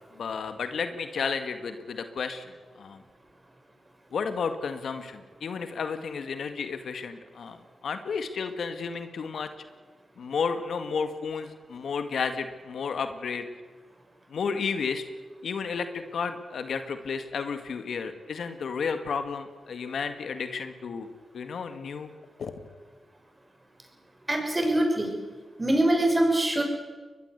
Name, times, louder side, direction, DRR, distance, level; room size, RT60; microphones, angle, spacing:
voice 1, 0.2-3.0 4.1-9.5 10.2-13.4 14.3-15.0 15.4-21.1 21.3-22.1 22.4-22.5, left 5 dB, 75° left, 8 dB, 2.0 m, -32 dB
voice 2, 24.3-25.1 25.6-26.6, right 1 dB, 25° right, 3 dB, 6.6 m, -23 dB
21.5 x 21.5 x 8.2 m, 1.4 s
cardioid pair, 60°, 0 cm